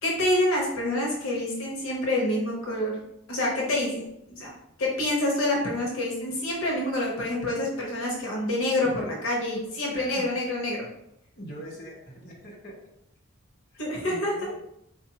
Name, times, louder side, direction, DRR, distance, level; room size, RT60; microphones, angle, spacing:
voice 1, 0.0-3.0 3.3-4.5 4.8-10.8 13.8-14.5, left 1 dB, 90° left, -2 dB, 0.9 m, -27 dB
voice 2, 9.9-10.2 11.4-12.7 13.7-14.5, equal, 50° left, -4 dB, 1.0 m, -42 dB
4.0 x 2.5 x 2.8 m, 0.78 s
head